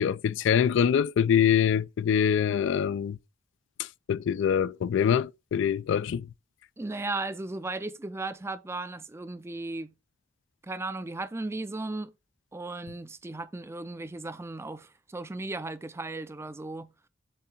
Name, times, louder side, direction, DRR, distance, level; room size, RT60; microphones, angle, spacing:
voice 1, 0.0-3.2 4.1-6.3, left 8 dB, 70° left, 0.3 m, -24 dB
voice 2, 6.8-9.9 10.6-12.1 12.5-16.9, right 2 dB, 15° right, 0.4 m, -36 dB
7.5 x 2.7 x 5.6 m
head